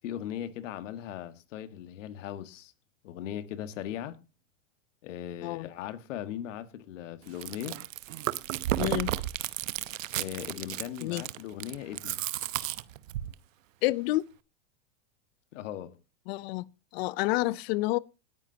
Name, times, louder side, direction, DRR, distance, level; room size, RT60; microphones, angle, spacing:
voice 1, 0.0-2.7 3.0-4.2 5.0-7.8 10.2-12.2 15.5-16.0, left 11 dB, 70° left, 1.7 m, -38 dB
Chewing mastication, 7.3-13.3, right 13 dB, 80° right, 0.9 m, -33 dB
voice 2, 8.8-9.1 11.0-11.2 13.8-14.2 16.3-16.7 16.9-18.0, left 19 dB, 55° left, 0.6 m, -29 dB
18.5 x 9.8 x 2.8 m
hypercardioid pair, 115°, 38 cm